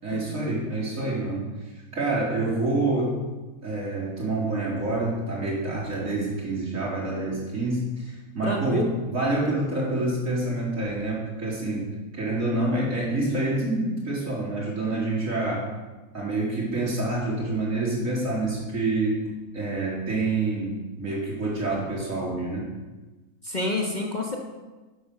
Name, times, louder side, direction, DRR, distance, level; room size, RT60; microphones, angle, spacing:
voice 1, 0.0-1.5 1.9-3.2 3.6-11.9 12.1-15.7 16.1-19.2 19.5-22.7, right 2 dB, 60° right, -5 dB, 4.3 m, -27 dB
voice 2, 8.4-8.9 23.4-24.4, left 1 dB, 30° left, 0 dB, 1.5 m, -28 dB
11.5 x 9.4 x 6.7 m, 1.2 s
omnidirectional pair, 1.6 m